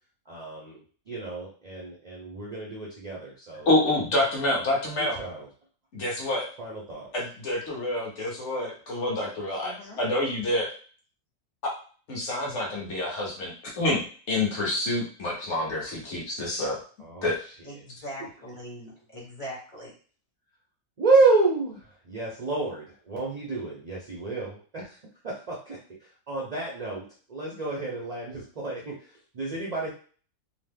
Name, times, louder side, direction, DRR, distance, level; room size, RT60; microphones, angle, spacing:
voice 1, 0.3-3.7 5.0-5.5 6.6-7.1 17.0-17.5 21.0-29.9, right 3 dB, 60° right, -3 dB, 0.4 m, -29 dB
voice 2, 3.7-5.2 5.9-6.5 7.1-10.7 11.6-11.7 12.1-14.0 14.3-16.8 17.2-17.4, left 1 dB, 55° left, -2 dB, 1.2 m, -27 dB
voice 3, 9.6-10.0 16.0-16.1 17.6-19.9, equal, 25° left, -5 dB, 0.9 m, -41 dB
2.9 x 2.1 x 3.4 m, 0.41 s
omnidirectional pair, 1.6 m